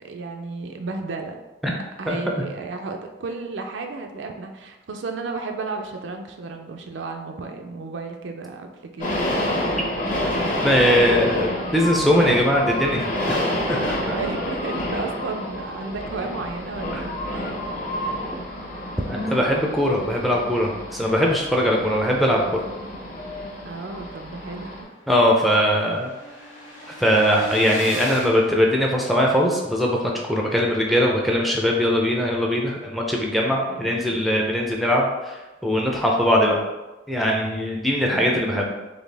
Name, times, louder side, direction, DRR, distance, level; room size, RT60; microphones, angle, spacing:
voice 1, 0.0-1.3 2.0-9.8 11.2-11.3 14.0-17.6 23.6-24.9 33.7-34.2 38.1-38.6, right 3 dB, 70° right, 4 dB, 0.4 m, -33 dB
sound 1, 9.0-24.8, left 1 dB, 40° left, 1.1 m, -28 dB
voice 2, 10.6-14.2 19.1-22.6 25.1-26.1 26.9-30.0 30.3-36.6 37.1-38.7, equal, ahead, -1 dB, 0.5 m, -21 dB
sound 2, 23.9-24.0 24.3-24.4 24.6-29.4, left 1 dB, 80° left, 1.3 m, -38 dB
4.2 x 2.9 x 3.3 m, 1.1 s
head